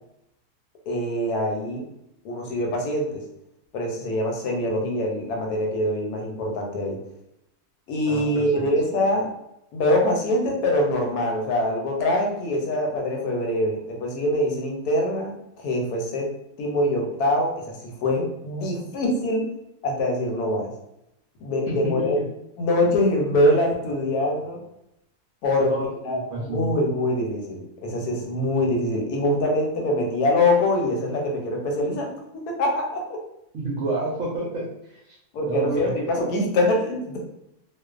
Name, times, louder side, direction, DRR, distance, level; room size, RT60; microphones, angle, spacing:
voice 1, 0.9-1.8 2.2-3.2 3.7-7.0 7.9-9.3 9.7-16.3 16.6-17.7 18.0-19.4 19.8-20.7 21.4-22.2 22.6-24.6 25.4-25.7 26.0-33.2 35.3-37.2, left 1 dB, 80° left, 0 dB, 1.1 m, -24 dB
voice 2, 8.1-8.6 21.7-22.2 25.6-26.7 33.5-35.2 35.4-36.1, right 2 dB, 70° right, -3 dB, 0.8 m, -29 dB
2.4 x 2.3 x 2.3 m, 0.81 s
omnidirectional pair, 1.7 m